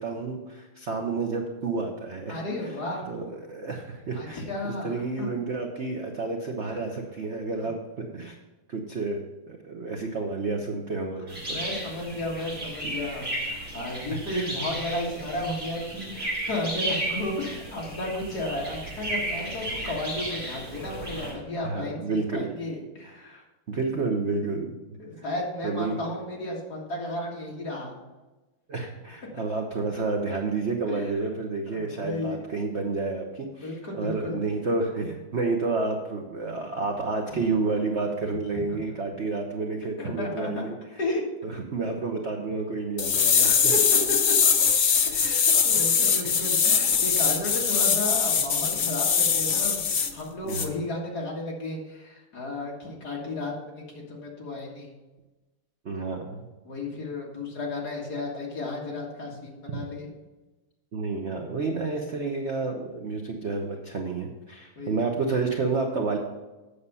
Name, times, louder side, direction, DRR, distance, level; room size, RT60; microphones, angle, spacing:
voice 1, 0.0-2.4 3.1-8.3 8.7-9.2 9.5-11.6 12.8-13.0 14.3-14.6 21.6-22.4 23.2-23.4 23.7-24.8 25.6-26.0 28.7-40.7 41.4-43.7 50.4-50.7 55.8-56.4 59.7-59.8 60.9-66.2, right 3 dB, 65° right, 2 dB, 0.6 m, -30 dB
voice 2, 2.3-3.0 4.1-5.3 6.7-6.9 7.6-7.7 11.4-23.4 25.0-27.9 30.9-31.2 31.7-32.4 33.6-34.4 37.3-37.4 38.5-38.6 40.0-40.6 41.0-41.2 43.2-43.8 44.1-44.2 45.0-54.9 56.6-60.1 64.8-65.0, left 2 dB, 45° left, -2 dB, 2.3 m, -33 dB
sound 1, 11.3-21.3, right 1 dB, 25° right, 3.9 m, -34 dB
sound 2, 43.0-50.1 50.5-50.7, left 6 dB, 85° left, 0.6 m, -22 dB
8.5 x 6.8 x 5.5 m, 1.1 s
omnidirectional pair, 2.4 m